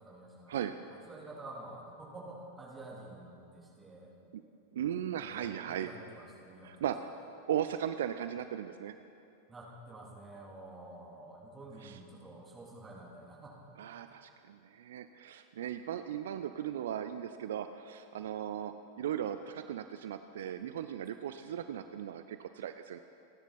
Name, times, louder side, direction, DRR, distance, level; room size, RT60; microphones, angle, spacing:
voice 1, 0.0-4.1 5.2-7.2 9.5-13.6, right 2 dB, 15° right, -4 dB, 3.2 m, -49 dB
voice 2, 4.7-5.9 6.6-7.1 7.5-8.9 11.8-12.0 13.8-23.0, right 10 dB, 60° right, 10 dB, 0.5 m, -37 dB
29.5 x 10.5 x 4.2 m, 2.7 s
figure-of-eight pair, 90°, 0 cm